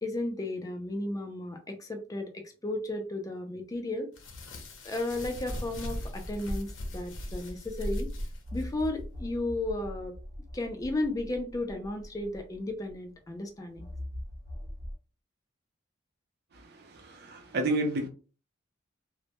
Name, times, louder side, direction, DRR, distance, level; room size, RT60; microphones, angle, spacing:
voice 1, 0.0-4.1 4.8-8.1 8.5-10.1 10.5-13.9, left 2 dB, 20° left, 0.4 m, -34 dB
sound 1, 4.1-8.9, equal, 75° left, 0.6 m, -38 dB
sound 2, 5.2-7.8 8.4-13.1 13.7-14.9, left 1 dB, 35° left, 0.9 m, -43 dB
voice 2, 16.5-18.1, right 2 dB, 55° right, 0.5 m, -31 dB
2.1 x 2.1 x 2.8 m
head